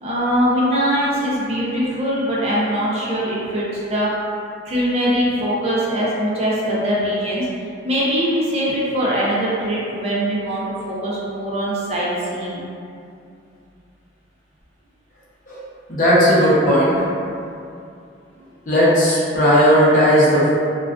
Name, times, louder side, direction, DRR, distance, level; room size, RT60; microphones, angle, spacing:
voice 1, 0.0-4.1 4.6-7.5 7.8-12.7, equal, 35° right, -6 dB, 0.4 m, -22 dB
voice 2, 15.9-17.0 18.7-20.5, equal, 45° left, -8 dB, 0.6 m, -15 dB
2.3 x 2.2 x 2.3 m, 2.5 s
head